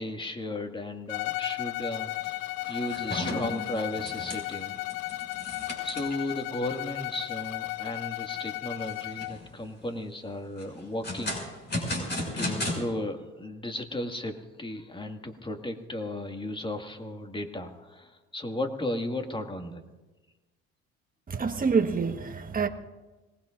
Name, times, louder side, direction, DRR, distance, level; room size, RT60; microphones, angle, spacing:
voice 1, 0.0-4.8 5.8-11.4 12.3-19.8, left 1 dB, 15° left, 2.0 m, -35 dB
Bowed string instrument, 1.1-9.4, left 19 dB, 75° left, 0.6 m, -35 dB
sound 1, 2.1-2.3 2.6-6.3 6.8-6.9 7.4-7.5 7.9-8.4 8.9-9.5 10.6-12.8, left 1 dB, 30° left, 6.0 m, -34 dB
voice 2, 21.3-22.7, right 5 dB, 25° right, 1.4 m, -26 dB
25.5 x 19.5 x 2.6 m
supercardioid pair, 75°, 33 cm